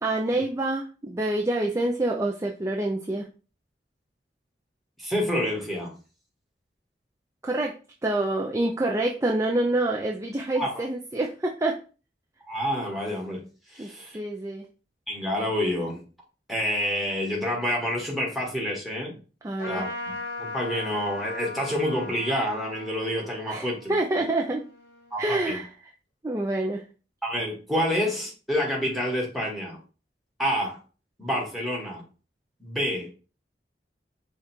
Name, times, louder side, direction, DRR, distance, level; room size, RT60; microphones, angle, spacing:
voice 1, 0.0-3.3 7.4-7.7 8.0-11.8 13.8-14.7 19.4-19.8 23.5-24.6 25.2-25.7 26.2-26.8, right 2 dB, 15° right, 1 dB, 0.4 m, -27 dB
voice 2, 5.0-5.9 10.5-10.8 12.4-13.4 13.7-14.2 15.1-16.0 16.5-19.2 19.7-19.9 20.4-24.2 25.1-25.6 27.2-29.8 30.4-30.8 31.2-32.0 32.6-33.1, equal, ahead, -2 dB, 1.4 m, -28 dB
Trumpet, 19.6-25.4, left 2 dB, 70° left, 1.2 m, -38 dB
5.1 x 2.4 x 4.4 m, 0.35 s
head